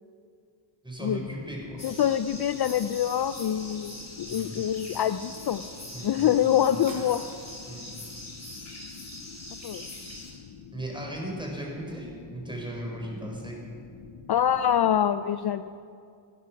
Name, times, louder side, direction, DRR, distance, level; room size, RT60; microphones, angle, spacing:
voice 1, 0.8-1.9 4.3-4.6 5.9-6.8 7.7-7.9 10.7-13.6, right 1 dB, 10° right, 0 dB, 4.7 m, -37 dB
sound 1, 1.1-15.0, left 7 dB, 85° left, 0.9 m, -48 dB
voice 2, 1.8-5.6 6.0-7.3 9.6-9.9 14.3-15.7, left 10 dB, 55° left, 12 dB, 0.5 m, -25 dB
sound 2, 1.8-10.3, left 1 dB, 35° left, 4.0 m, -43 dB
sound 3, 6.9-7.8, right 1 dB, 40° right, 4.7 m, -47 dB
18.0 x 11.5 x 5.9 m, 2.3 s
cardioid pair, 65°, 48 cm